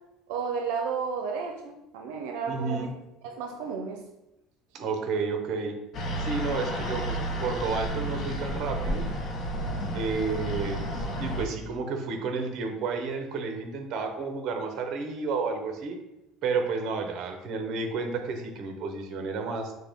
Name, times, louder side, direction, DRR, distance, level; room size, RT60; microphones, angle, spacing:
voice 1, 0.3-2.9 3.2-4.0, right 5 dB, 90° right, 3 dB, 0.5 m, -32 dB
voice 2, 2.5-2.9 4.7-5.8 6.2-9.1 9.9-16.0 16.4-19.7, right 4 dB, 50° right, 5 dB, 0.8 m, -31 dB
sound 1, 5.9-11.5, right 1 dB, 40° left, 0.7 m, -31 dB
6.4 x 2.2 x 3.5 m, 0.90 s
cardioid pair, 140°, 0 cm